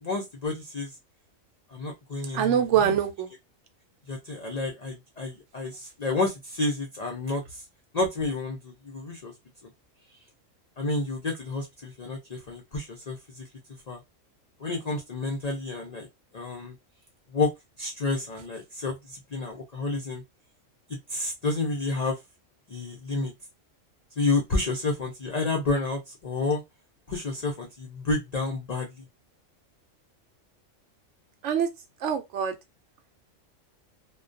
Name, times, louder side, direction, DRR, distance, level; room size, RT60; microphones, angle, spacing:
voice 1, 0.0-0.9 1.7-2.9 4.1-7.6 7.9-9.3 10.8-13.5 13.9-14.0 14.6-16.1 16.3-16.7 17.3-17.5 17.8-20.2 20.9-22.2 22.7-23.3 24.2-26.6 27.1-29.0, left 3 dB, 65° left, 0.4 m, -30 dB
voice 2, 2.3-3.3 31.4-31.7 32.0-32.5, right 8 dB, 70° right, 0.9 m, -24 dB
2.3 x 2.2 x 2.5 m
omnidirectional pair, 1.3 m